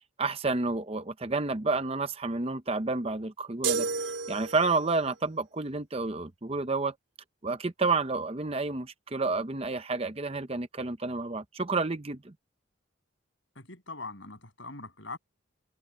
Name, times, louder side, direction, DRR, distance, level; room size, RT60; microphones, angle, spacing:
voice 1, 0.2-3.9 4.3-6.9 7.4-12.3, right 3 dB, 30° right, 0.8 m, -30 dB
sound 1, 3.6-5.0, right 4 dB, 75° right, 4.2 m, -31 dB
voice 2, 13.6-15.2, left 3 dB, 65° left, 7.8 m, -42 dB
head